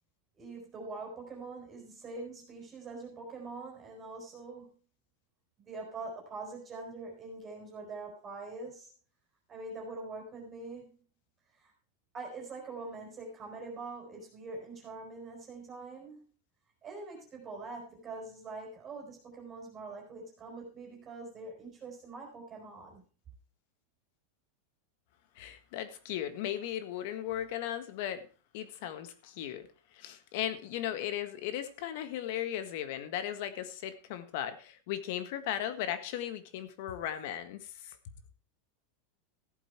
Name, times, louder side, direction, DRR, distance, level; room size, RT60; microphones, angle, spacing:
voice 1, 0.4-4.8 5.6-8.9 9.5-11.0 11.5-11.7 12.1-16.2 16.8-23.0, right 3 dB, 20° right, 4.1 m, -44 dB
voice 2, 25.3-28.2 28.5-38.0, left 11 dB, 55° left, 1.6 m, -37 dB
14.5 x 8.1 x 4.6 m
supercardioid pair, 155°, 0 cm